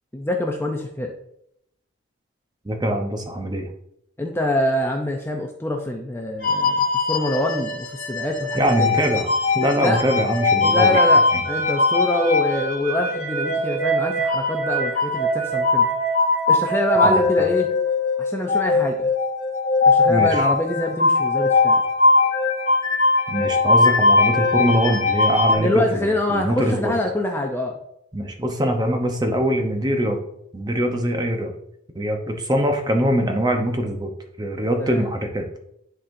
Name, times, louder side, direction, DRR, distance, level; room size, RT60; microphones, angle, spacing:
voice 1, 0.1-1.1 4.2-8.9 9.8-10.0 10.6-15.9 16.5-17.7 18.2-19.1 19.9-21.8 25.6-27.8 34.8-35.0, left 1 dB, 10° left, 1 dB, 0.5 m, -25 dB
voice 2, 2.6-3.7 8.5-11.0 11.3-11.4 17.0-17.5 20.1-20.5 23.3-26.9 28.1-30.2 30.5-31.5 31.9-34.1 34.4-35.6, equal, 20° right, 4 dB, 0.8 m, -23 dB
sound 1, 6.4-25.5, left 3 dB, 40° left, 1.6 m, -20 dB
10.5 x 4.1 x 2.6 m, 0.75 s
head